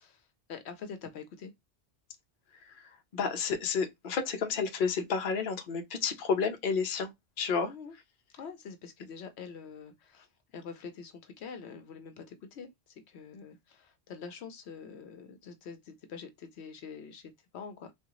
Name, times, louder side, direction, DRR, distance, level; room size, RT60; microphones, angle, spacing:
voice 1, 0.0-1.5 7.6-7.9 8.4-17.9, left 6 dB, 85° left, 0.9 m, -45 dB
voice 2, 2.6-7.7, left 5 dB, 55° left, 0.8 m, -31 dB
3.6 x 2.4 x 3.0 m
omnidirectional pair, 1.1 m